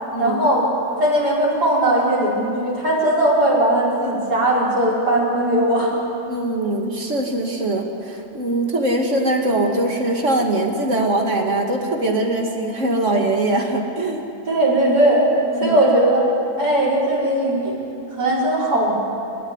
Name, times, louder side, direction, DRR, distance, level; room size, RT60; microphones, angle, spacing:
voice 1, 0.2-0.7 1.0-5.9 14.5-15.3 15.6-16.2 16.6-17.7 18.2-18.9, right 1 dB, 85° right, -5 dB, 6.1 m, -18 dB
voice 2, 6.3-14.2 15.6-15.8, right 2 dB, 50° right, 2 dB, 2.6 m, -22 dB
28.5 x 13.0 x 9.7 m, 2.7 s
omnidirectional pair, 1.7 m